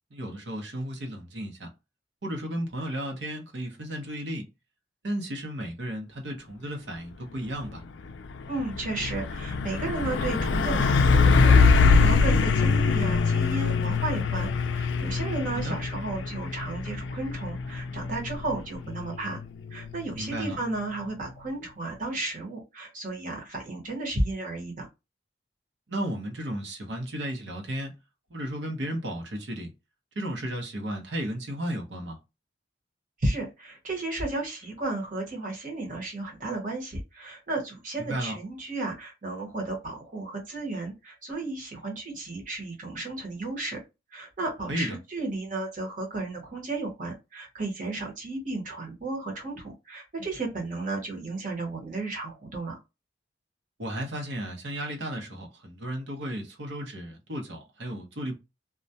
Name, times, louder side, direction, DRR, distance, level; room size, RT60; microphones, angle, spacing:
voice 1, 0.1-1.7 2.2-4.4 5.0-7.8 15.6-15.8 20.2-20.6 25.9-27.9 28.3-29.7 30.2-32.2 38.0-38.3 44.7-45.0 53.8-58.3, right 1 dB, 75° right, 0.8 m, -34 dB
Truck, 7.5-7.7 8.1-20.7, left 4 dB, 85° left, 0.3 m, -24 dB
voice 2, 8.5-19.4 19.7-24.9 33.2-43.8 44.1-52.8, right 2 dB, 45° right, 0.9 m, -33 dB
2.3 x 2.1 x 2.7 m
head